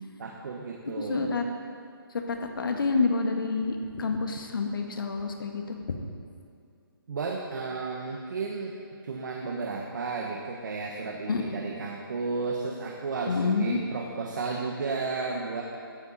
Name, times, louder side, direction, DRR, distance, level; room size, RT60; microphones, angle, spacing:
voice 1, 0.2-1.4 7.1-8.7 9.0-15.6, right 4 dB, 55° right, 0 dB, 1.6 m, -33 dB
voice 2, 1.0-1.4 2.1-6.0 11.3-11.6 13.3-13.8, left 4 dB, 65° left, 3 dB, 1.9 m, -28 dB
15.5 x 14.0 x 4.3 m, 2.4 s
hypercardioid pair, 160°, 12 cm